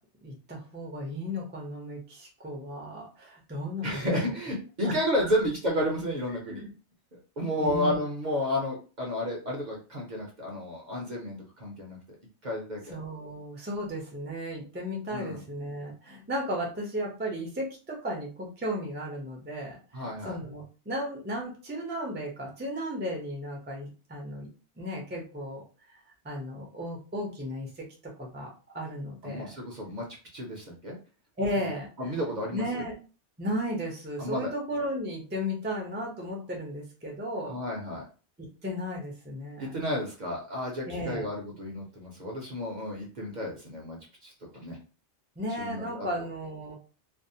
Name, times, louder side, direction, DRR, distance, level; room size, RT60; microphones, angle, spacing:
voice 1, 0.2-4.3 4.8-5.0 5.2-5.4 6.5-6.7 7.6-8.0 12.9-24.5 24.8-25.6 26.2-28.5 28.7-29.5 31.4-32.1 32.5-32.9 33.4-37.6 38.4-39.8 40.9-41.2 45.4-46.7, equal, 15° right, -1 dB, 0.4 m, -35 dB
voice 2, 3.8-6.6 7.1-12.0 12.4-13.0 15.1-15.4 19.9-20.4 29.2-30.1 30.3-31.0 31.6-31.7 32.0-32.8 34.2-34.5 37.4-38.0 39.6-44.8 45.6-46.1, equal, 45° right, -1 dB, 0.7 m, -32 dB
2.6 x 2.0 x 2.6 m, 0.35 s
omnidirectional pair, 1.2 m